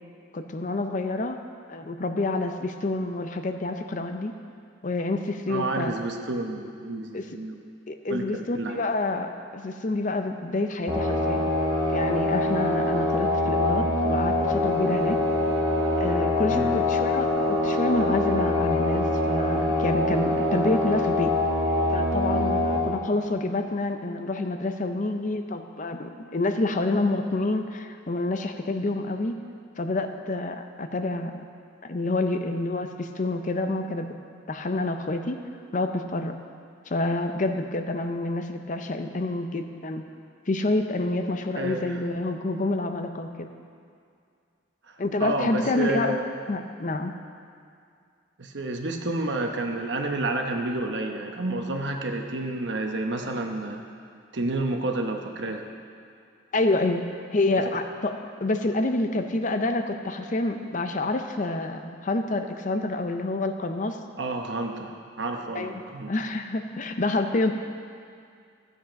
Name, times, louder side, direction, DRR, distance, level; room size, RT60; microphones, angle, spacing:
voice 1, 0.3-1.4 1.7-4.3 4.8-5.9 7.1-7.2 7.9-11.5 11.9-15.2 16.0-21.3 21.9-29.4 29.8-31.4 31.8-34.1 34.5-35.4 35.7-36.3 36.9-40.0 40.5-43.5 45.0-46.2 46.5-47.1 56.5-64.0 65.5-65.7 66.1-67.5, left 2 dB, 40° left, 6 dB, 0.6 m, -28 dB
voice 2, 5.5-7.6 8.1-8.8 16.5-16.8 41.6-42.0 44.9-46.2 48.4-53.8 54.3-55.7 64.2-66.1, right 2 dB, 60° right, 3 dB, 1.0 m, -30 dB
sound 1, 10.9-22.8, left 1 dB, 15° right, 2.1 m, -24 dB
13.0 x 8.2 x 5.2 m, 2.3 s
head